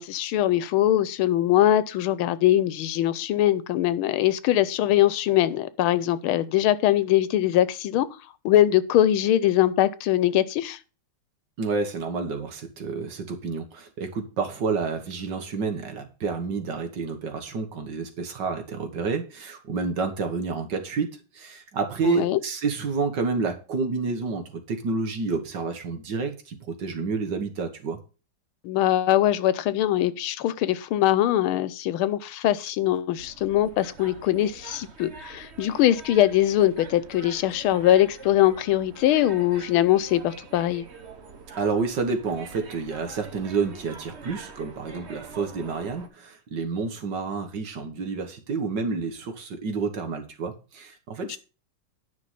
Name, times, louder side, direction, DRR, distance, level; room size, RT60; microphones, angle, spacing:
voice 1, 0.0-8.1 8.4-10.8 22.0-22.4 28.6-40.8 51.3-51.4, left 13 dB, 90° left, 1.5 m, -22 dB
voice 2, 11.6-28.0 41.6-51.4, right 4 dB, 60° right, 2.0 m, -29 dB
sound 1, 33.2-46.1, right 4 dB, 40° right, 1.3 m, -45 dB
10.0 x 5.8 x 5.7 m
omnidirectional pair, 2.3 m